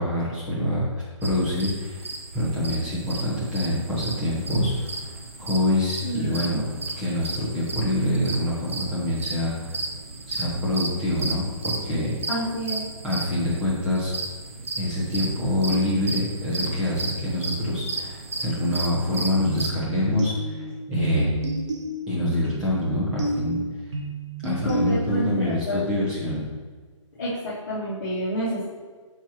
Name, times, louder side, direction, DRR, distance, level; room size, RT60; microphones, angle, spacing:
voice 1, 0.0-2.0 2.3-5.1 5.4-6.6 7.0-9.7 10.3-12.1 13.0-14.1 14.8-21.4 22.1-23.6 24.4-26.4, left 1 dB, 5° right, -8 dB, 1.1 m, -26 dB
sound 1, 1.2-19.7, right 3 dB, 25° right, 0.4 m, -34 dB
voice 2, 6.0-6.6 12.3-12.8 24.6-25.9 27.1-28.6, equal, 35° left, -11 dB, 2.0 m, -29 dB
sound 2, 19.4-25.4, right 2 dB, 65° right, 1.5 m, -30 dB
12.0 x 4.5 x 3.0 m, 1.5 s
hypercardioid pair, 175°, 17 cm